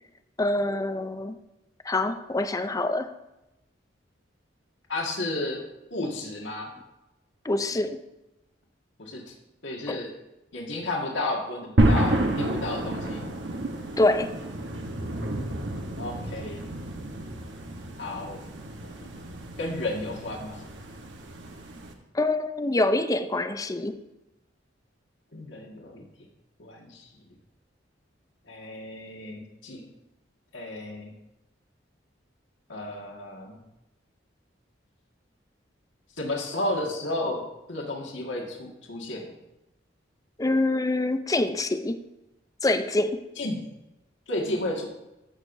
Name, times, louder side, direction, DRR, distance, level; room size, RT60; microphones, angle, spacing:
voice 1, 0.4-1.4 1.8-3.1 7.4-8.0 9.9-10.0 14.0-14.3 22.1-24.0 40.4-42.0 42.6-43.3, left 2 dB, 20° left, 10 dB, 0.5 m, -25 dB
voice 2, 4.9-5.6 5.9-6.7 9.0-9.3 9.6-10.1 10.5-13.3 16.0-16.7 18.0-18.4 18.8-19.1 19.6-20.6 25.3-26.0 26.6-27.1 28.5-29.8 30.5-31.1 32.7-33.6 36.2-37.4 37.7-39.3 43.4-43.6 44.3-44.9, left 2 dB, 75° left, 0 dB, 1.8 m, -32 dB
sound 1, 11.8-21.9, right 1 dB, 75° right, 1.1 m, -30 dB
14.0 x 6.5 x 2.6 m, 0.94 s
head